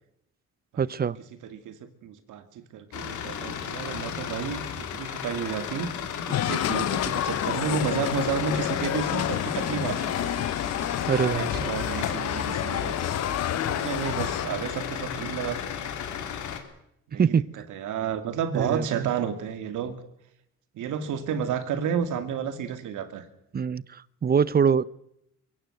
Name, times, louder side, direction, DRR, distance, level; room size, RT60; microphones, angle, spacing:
voice 1, 0.8-1.2 11.1-11.7 17.2-17.5 18.5-19.1 23.5-24.8, right 6 dB, 30° right, 22 dB, 0.7 m, -24 dB
voice 2, 1.4-5.9 6.3-10.1 11.1-13.0 13.7-15.6 17.1-17.3 17.7-20.0 20.7-23.2, right 8 dB, 80° right, 10 dB, 2.5 m, -31 dB
sound 1, 2.9-16.6, left 8 dB, 75° left, 3.2 m, -33 dB
sound 2, 6.3-14.5, left 11 dB, 55° left, 0.8 m, -30 dB
22.5 x 16.5 x 7.9 m, 0.78 s
cardioid pair, 90°, 30 cm